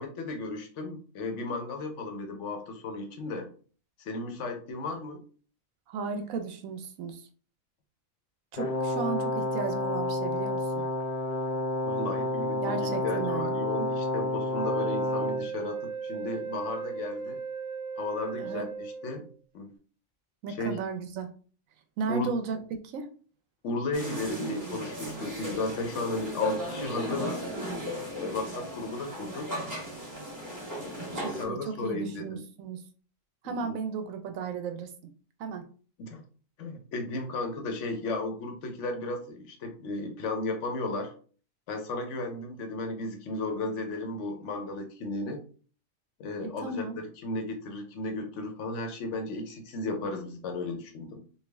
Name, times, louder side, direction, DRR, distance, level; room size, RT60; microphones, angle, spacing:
voice 1, 0.0-3.5 4.0-5.2 11.8-17.4 18.0-19.3 19.5-19.7 20.5-20.8 22.1-22.3 23.6-27.4 28.2-29.5 30.8-32.3 33.4-33.7 36.0-36.2 36.6-41.1 41.7-45.4 46.2-51.2, left 2 dB, 65° left, 4 dB, 1.0 m, -34 dB
voice 2, 5.9-7.3 8.5-10.8 12.6-13.5 18.4-18.7 20.4-21.3 22.0-22.6 22.9-23.1 31.1-32.8 33.4-34.9 35.4-35.6 46.6-47.0, right 5 dB, 80° right, 7 dB, 1.0 m, -34 dB
Brass instrument, 8.5-15.5, left 1 dB, 90° left, 0.3 m, -30 dB
Wind instrument woodwind instrument, 14.5-19.3, right 5 dB, 35° right, 0.5 m, -37 dB
sound 1, 23.9-31.4, equal, 15° right, 1.1 m, -36 dB
3.4 x 2.3 x 3.3 m, 0.41 s
omnidirectional pair, 1.4 m